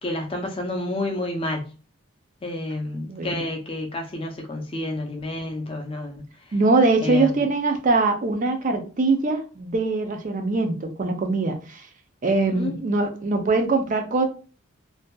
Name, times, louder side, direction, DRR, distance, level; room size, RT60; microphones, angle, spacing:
voice 1, 0.0-1.7 2.4-6.2 7.0-7.4 12.5-12.8, left 1 dB, 25° left, 0.4 m, -29 dB
voice 2, 3.1-3.5 6.5-11.9 12.2-14.3, right 3 dB, 35° right, 0.4 m, -22 dB
2.6 x 2.2 x 2.2 m
head